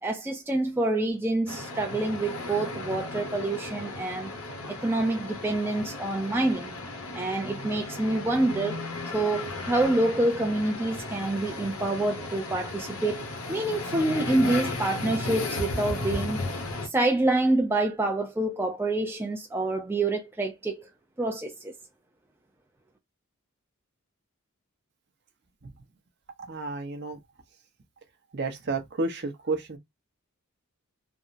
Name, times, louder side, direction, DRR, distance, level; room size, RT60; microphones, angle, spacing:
voice 1, 0.0-4.3 4.7-6.8 7.1-8.8 9.1-16.4 16.8-20.9 21.2-21.7, right 2 dB, 10° right, 0.4 m, -27 dB
sound 1, 1.5-16.9, left 2 dB, 80° left, 0.9 m, -35 dB
voice 2, 26.4-27.2 28.3-29.8, right 3 dB, 50° right, 0.7 m, -31 dB
3.4 x 2.0 x 2.5 m
head